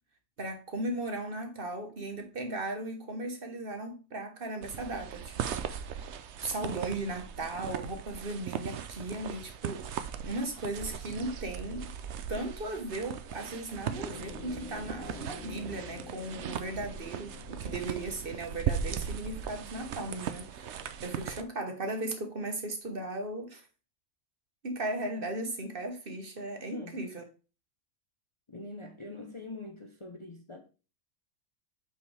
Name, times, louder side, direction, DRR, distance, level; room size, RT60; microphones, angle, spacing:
voice 1, 0.4-5.9 6.4-11.9 12.3-23.7 24.6-27.2, right 2 dB, 45° right, 1.3 m, -37 dB
sound 1, 4.6-21.4, right 8 dB, 60° right, 0.9 m, -38 dB
sound 2, 13.9-22.1, left 7 dB, 75° left, 1.4 m, -50 dB
voice 2, 26.7-27.0 28.5-30.6, left 2 dB, 25° left, 0.8 m, -43 dB
7.5 x 5.5 x 3.3 m
omnidirectional pair, 1.4 m